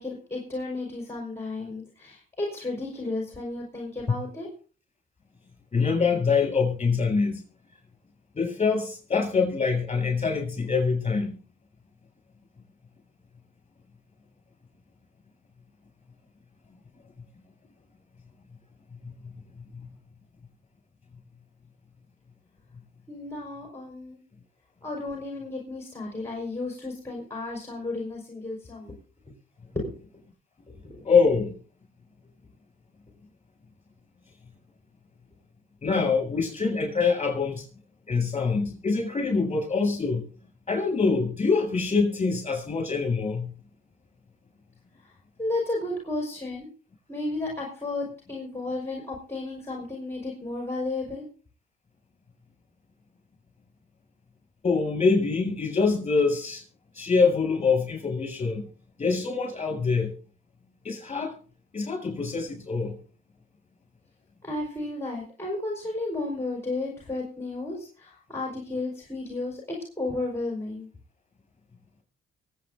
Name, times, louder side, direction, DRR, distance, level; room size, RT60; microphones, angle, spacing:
voice 1, 0.0-4.5 23.1-24.2 24.8-29.0 29.7-30.0 30.8-31.0 45.4-46.7 47.1-51.2 64.4-70.9, left 2 dB, 10° left, 5.0 m, -33 dB
voice 2, 5.7-7.4 8.4-11.4 19.0-19.1 19.7-19.8 31.0-31.6 35.8-37.7 38.1-40.3 40.7-43.5 54.6-56.6 56.9-58.7 59.0-60.1 60.8-61.4 61.7-63.0, left 4 dB, 30° left, 7.4 m, -25 dB
23.5 x 8.7 x 3.9 m
cardioid pair, 90°, 20 cm